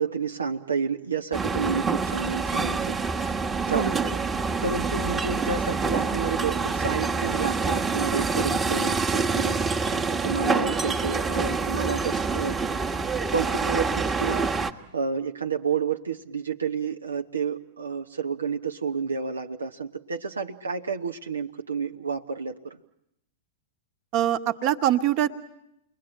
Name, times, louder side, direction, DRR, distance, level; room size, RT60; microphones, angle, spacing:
voice 1, 0.0-3.4 3.7-9.6 10.1-12.6 13.3-22.8, right 5 dB, 80° right, 4 dB, 1.0 m, -30 dB
sound 1, 1.3-14.7, right 4 dB, 15° right, 1.5 m, -26 dB
voice 2, 3.7-4.0 24.1-25.3, right 12 dB, 45° right, 9 dB, 1.6 m, -23 dB
29.0 x 21.5 x 8.9 m, 0.82 s
figure-of-eight pair, 100°, 0 cm